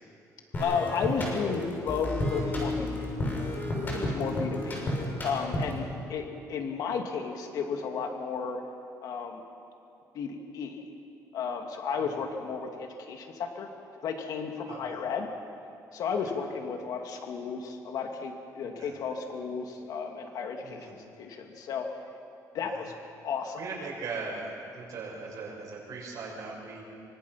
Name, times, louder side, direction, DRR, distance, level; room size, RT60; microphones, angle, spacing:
sound 1, 0.5-5.9, left 1 dB, 30° left, 6.6 m, -32 dB
voice 1, 0.6-3.1 3.9-8.6 9.0-9.4 10.1-10.9 11.3-13.7 14.0-15.3 15.9-21.9 22.5-22.9 23.2-23.6, left 6 dB, 65° left, 3 dB, 2.5 m, -33 dB
voice 2, 4.0-4.4 5.8-5.9 14.7-15.0 16.1-16.3 18.8-18.9 20.6-20.9 22.6-22.8 23.6-24.4 24.7-26.8, right 4 dB, 55° right, -2 dB, 5.9 m, -40 dB
26.5 x 25.0 x 5.9 m, 2.6 s
cardioid pair, 165°, 7 cm